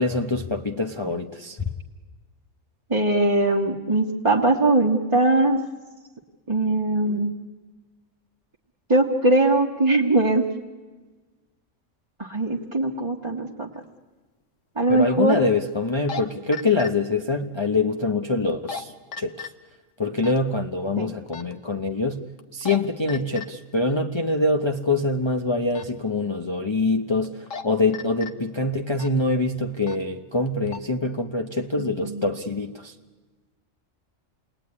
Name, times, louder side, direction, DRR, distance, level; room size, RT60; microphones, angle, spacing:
voice 1, 0.0-1.6 14.9-19.5 20.0-22.2 22.5-32.9, left 3 dB, 25° left, 3 dB, 1.0 m, -24 dB
voice 2, 2.9-5.6 6.5-7.3 8.9-10.5 12.2-13.7 14.8-15.4 21.0-21.1 32.0-32.2, right 2 dB, 25° right, -2 dB, 1.4 m, -21 dB
sound 1, 13.8-13.9 15.9-16.2 16.5-16.9 18.5-18.8 19.1-19.5 20.2-20.4 21.3-21.5 22.4-22.8 23.1-23.5 25.7-25.9 27.2-27.6 27.9-28.3 28.9-29.2 29.8-30.0 30.5-30.8, left 6 dB, 90° left, 1.7 m, -34 dB
28.5 x 20.5 x 9.7 m, 1.3 s
omnidirectional pair, 1.3 m